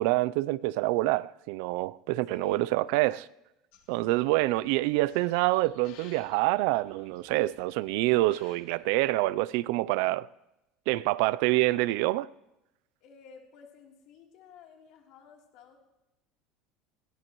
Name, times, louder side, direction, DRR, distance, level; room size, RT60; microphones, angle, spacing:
voice 1, 0.0-3.2 3.9-10.3 10.9-12.3, right 19 dB, 75° right, 0.4 m, -26 dB
voice 2, 2.3-2.9 13.0-15.8, left 6 dB, 65° left, 3.3 m, -53 dB
sound 1, 3.7-9.3, left 7 dB, 80° left, 2.9 m, -59 dB
21.0 x 16.5 x 3.1 m
cardioid pair, 135°, 0 cm